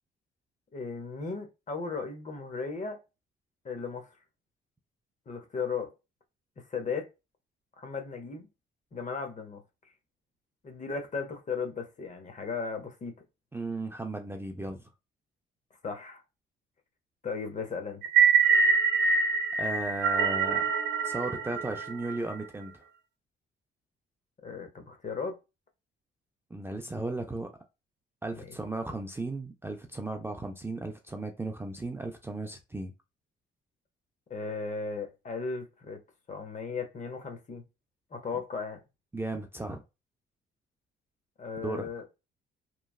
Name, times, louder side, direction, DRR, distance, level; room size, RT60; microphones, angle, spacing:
voice 1, 0.7-3.0 3.6-4.1 5.3-5.9 6.6-7.1 7.8-8.5 8.9-9.6 10.6-13.1 15.8-16.2 17.2-18.0 24.4-25.4 28.3-28.6 34.3-36.0 36.3-37.6 38.1-38.8 41.4-42.1, left 5 dB, 40° left, 0.8 m, -36 dB
voice 2, 13.5-14.8 19.1-19.3 19.6-20.7 21.0-22.8 26.5-27.5 28.2-32.9 39.1-39.8 41.6-41.9, right 2 dB, 10° right, 0.4 m, -35 dB
sound 1, 18.0-22.3, right 5 dB, 60° right, 0.7 m, -24 dB
3.1 x 2.2 x 2.3 m
cardioid pair, 90°, 20 cm